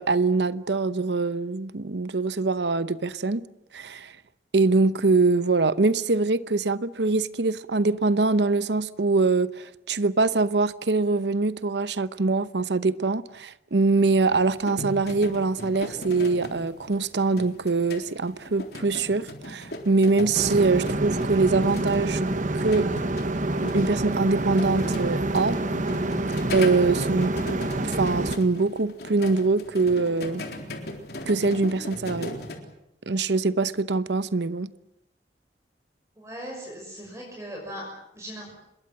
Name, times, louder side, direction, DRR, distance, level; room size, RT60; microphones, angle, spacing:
voice 1, 0.0-3.4 3.7-4.1 4.5-22.2 22.5-22.9 23.7-25.6 26.5-27.3 27.8-30.4 31.3-32.4 33.1-34.7, right 3 dB, 80° right, 0.8 m, -23 dB
sound 1, 14.3-32.6, left 1 dB, 65° left, 3.8 m, -38 dB
sound 2, 20.3-28.4, right 2 dB, 45° right, 1.2 m, -27 dB
voice 2, 36.2-38.5, equal, 15° right, 6.1 m, -39 dB
26.0 x 21.5 x 7.6 m
head